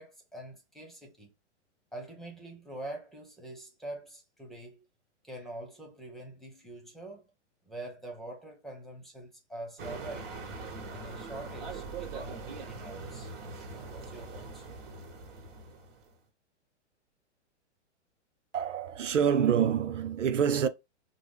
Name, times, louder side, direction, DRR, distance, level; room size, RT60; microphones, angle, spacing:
voice 1, 0.0-1.3 1.9-4.9 5.2-7.2 7.6-10.3 10.9-12.4 12.7-13.3 13.8-14.7, right 1 dB, ahead, 1.2 m, -44 dB
sound 1, 9.8-16.1, right 4 dB, 50° right, 1.7 m, -42 dB
voice 2, 18.5-20.7, right 8 dB, 90° right, 0.8 m, -26 dB
5.1 x 2.3 x 3.7 m
hypercardioid pair, 130°, 36 cm